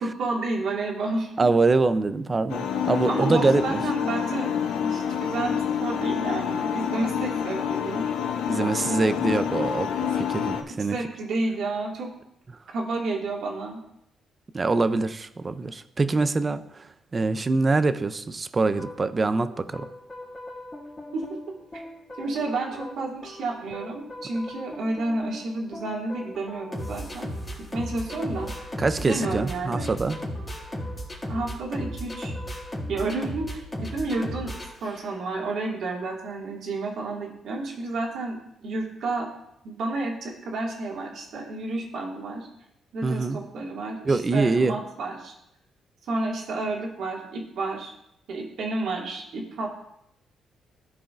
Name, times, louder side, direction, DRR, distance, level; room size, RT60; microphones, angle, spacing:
voice 1, 0.0-1.3 3.1-4.5 4.8-8.0 8.6-9.0 10.9-12.1 12.7-13.8 21.1-21.3 21.7-21.8 22.2-27.3 27.7-28.7 29.0-29.9 31.3-32.3 32.9-34.5 34.8-39.3 39.6-42.5 42.9-45.3 46.1-47.9 48.3-49.7, right 2 dB, 70° right, -1 dB, 2.1 m, -30 dB
voice 2, 1.4-3.8 8.5-11.0 14.5-19.9 28.8-30.2 43.0-43.4 44.1-44.8, right 3 dB, 30° right, 12 dB, 0.5 m, -24 dB
sound 1, 2.5-10.6, left 8 dB, 90° left, 0.7 m, -28 dB
sound 2, 18.7-35.4, equal, 20° left, 2.2 m, -37 dB
14.5 x 4.8 x 2.5 m, 0.79 s
cardioid pair, 90°, 0 cm